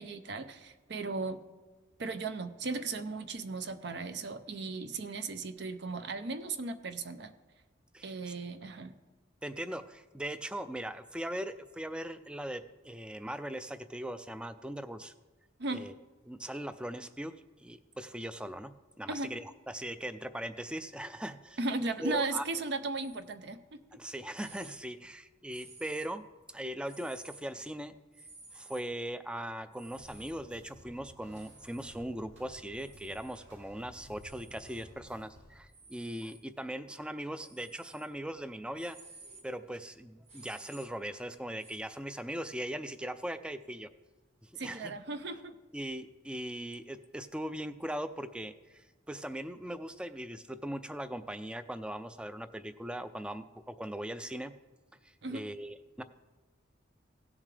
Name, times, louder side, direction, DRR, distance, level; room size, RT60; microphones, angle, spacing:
voice 1, 0.0-1.4 2.0-7.3 8.0-8.9 15.6-15.9 19.1-19.3 21.6-23.8 44.6-45.5 55.2-55.5, right 3 dB, 60° right, 11 dB, 0.6 m, -36 dB
voice 2, 9.4-15.1 15.7-15.9 16.3-18.7 19.0-21.6 22.0-22.4 23.9-26.2 26.5-27.9 28.5-39.0 39.4-43.9 44.4-45.0 45.7-54.5 55.0-56.0, right 1 dB, 5° right, 12 dB, 0.4 m, -40 dB
sound 1, 22.9-23.2 23.9-24.0 24.4-24.8 25.5-26.3 26.9-27.4 28.1-28.8 29.7-30.3 31.3-32.0 32.7-33.4 34.2-34.9 35.7-36.4 37.4-38.1 38.6-41.8, right 3 dB, 35° right, 1.4 m, -55 dB
sound 2, 29.9-35.6, equal, 85° right, 2.5 m, -55 dB
16.5 x 7.2 x 3.3 m, 1.2 s
head